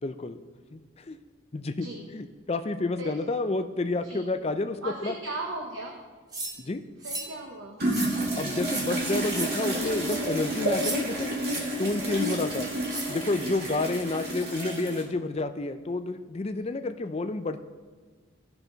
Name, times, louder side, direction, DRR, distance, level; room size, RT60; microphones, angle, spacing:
voice 1, 0.0-0.4 0.7-1.2 1.5-1.9 2.1-5.1 6.6-6.8 8.3-11.4 11.8-12.7 13.1-17.6, left 2 dB, 30° left, 9 dB, 0.4 m, -30 dB
voice 2, 1.8-2.1 3.0-3.2 4.0-4.4 4.8-6.0 7.0-7.9 16.7-16.9, right 2 dB, 75° right, 1 dB, 1.0 m, -37 dB
sound 1, 6.3-6.5 7.0-7.3 7.9-8.1 8.6-8.9 9.3-9.5 10.0-10.2 10.7-11.0 11.4-11.6 12.2-12.4 12.9-13.0, right 2 dB, 20° right, 1.1 m, -35 dB
sound 2, 7.8-15.0, right 1 dB, 50° right, 1.9 m, -30 dB
14.5 x 5.8 x 3.9 m, 1.4 s
head